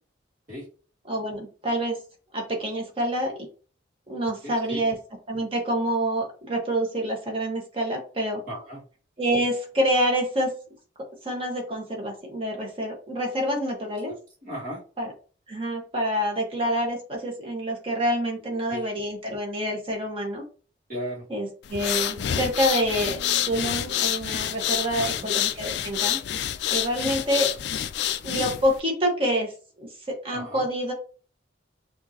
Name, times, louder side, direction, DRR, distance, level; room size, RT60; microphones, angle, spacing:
voice 1, 1.1-2.0 2.3-3.3 4.1-4.9 5.3-8.4 9.2-10.5 11.2-14.1 15.0-15.1 15.5-20.4 21.3-23.2 23.4-26.2 26.7-27.5 28.2-29.5 29.8-30.9, equal, 30° right, 0 dB, 1.4 m, -27 dB
voice 2, 4.4-4.8 8.5-8.8 13.9-14.1 14.4-14.8 18.4-18.8 20.9-21.2 24.9-25.3 27.0-27.5 30.3-30.7, equal, 45° right, -6 dB, 1.9 m, -37 dB
sound 1, 21.6-28.8, left 11 dB, 65° left, 0.4 m, -28 dB
5.7 x 2.7 x 2.9 m, 0.39 s
head